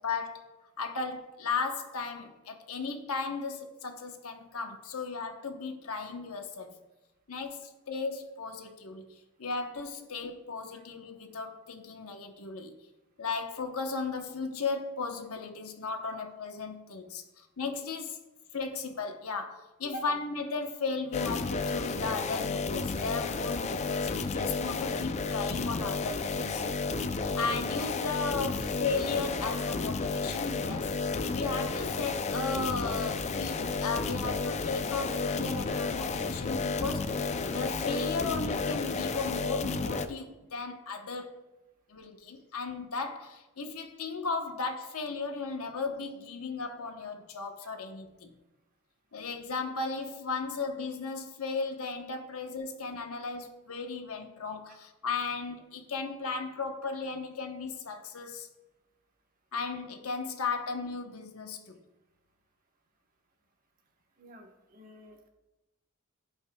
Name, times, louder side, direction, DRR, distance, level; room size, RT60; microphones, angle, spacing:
voice 1, 0.0-0.4 0.8-6.7 7.3-9.1 9.4-12.7 13.2-18.2 18.5-26.6 27.1-30.9 31.3-41.4 41.9-48.3 49.1-58.5 59.5-61.8, left 4 dB, 80° left, 5 dB, 1.0 m, -36 dB
sound 1, 21.1-40.1, left 4 dB, 30° left, 0.4 m, -32 dB
voice 2, 64.2-65.3, right 1 dB, 40° right, 2 dB, 1.1 m, -46 dB
15.5 x 5.6 x 2.3 m, 1.0 s
head